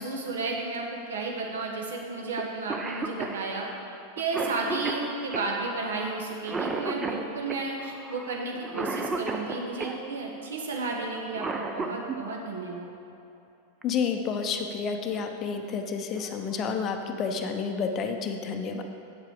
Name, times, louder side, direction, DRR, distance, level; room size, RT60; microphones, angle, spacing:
voice 1, 0.0-3.7 4.2-12.9, right 3 dB, 65° right, 0 dB, 1.3 m, -33 dB
Cough, 2.4-2.5 2.7-10.0 11.1-12.2 13.8-13.9 14.9-15.2 15.7-15.8 16.2-16.6, right 3 dB, 15° right, 0.6 m, -34 dB
voice 2, 13.8-18.8, left 5 dB, 30° left, 5 dB, 0.6 m, -30 dB
8.4 x 7.4 x 4.8 m, 2.7 s
figure-of-eight pair, 90°, 0 cm